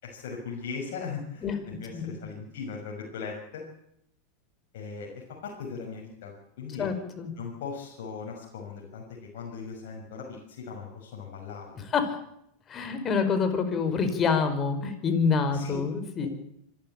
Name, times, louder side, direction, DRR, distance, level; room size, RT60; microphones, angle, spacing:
voice 1, 0.0-3.6 4.7-6.9 7.4-11.8 15.5-15.8 16.2-16.3, left 5 dB, 70° left, -2 dB, 6.0 m, -39 dB
voice 2, 6.8-7.3 11.9-12.0 12.7-16.3, left 5 dB, 30° left, 8 dB, 5.0 m, -26 dB
25.5 x 13.0 x 8.8 m, 0.75 s
hypercardioid pair, 100°, 0 cm